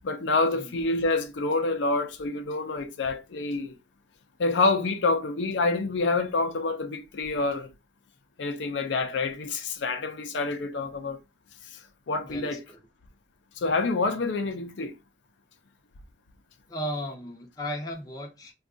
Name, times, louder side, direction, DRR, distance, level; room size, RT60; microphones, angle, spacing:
voice 1, 0.0-3.8 4.4-7.7 8.4-11.2 11.6-12.6 13.6-14.9, left 3 dB, 70° left, 0.5 m, -27 dB
voice 2, 12.2-12.8 16.7-18.5, equal, 20° left, 0.6 m, -35 dB
2.5 x 2.3 x 3.7 m
head